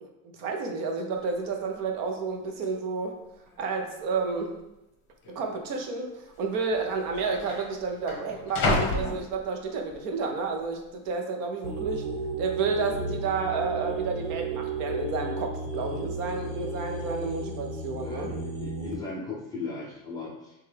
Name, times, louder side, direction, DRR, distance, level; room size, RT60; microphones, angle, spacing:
voice 1, 0.0-3.2 3.6-4.6 5.3-12.1 12.4-18.3, right 4 dB, 45° right, 3 dB, 0.7 m, -31 dB
sound 1, 1.2-1.3 1.5-1.9 2.6-2.7 3.5-4.0 4.2-4.4 5.2-5.4 6.4-6.5 6.7-9.9 10.4-10.8, left 2 dB, 30° left, 0.8 m, -32 dB
sound 2, 11.6-18.9, right 3 dB, 70° right, 1.2 m, -34 dB
voice 2, 18.0-20.5, left 3 dB, 10° left, -6 dB, 0.5 m, -37 dB
6.1 x 2.3 x 3.3 m, 0.90 s
supercardioid pair, 160°, 39 cm